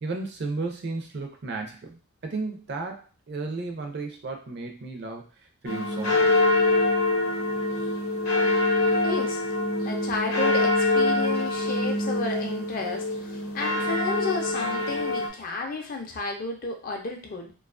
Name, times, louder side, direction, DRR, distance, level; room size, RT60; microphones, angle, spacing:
voice 1, 0.0-5.2 5.6-6.3, right 3 dB, 50° right, 3 dB, 0.5 m, -34 dB
sound 1, 5.6-15.3, left 2 dB, 85° left, 0.7 m, -24 dB
voice 2, 9.0-9.4 9.8-17.5, left 3 dB, 40° left, 3 dB, 0.4 m, -32 dB
2.4 x 2.3 x 2.4 m, 0.36 s
head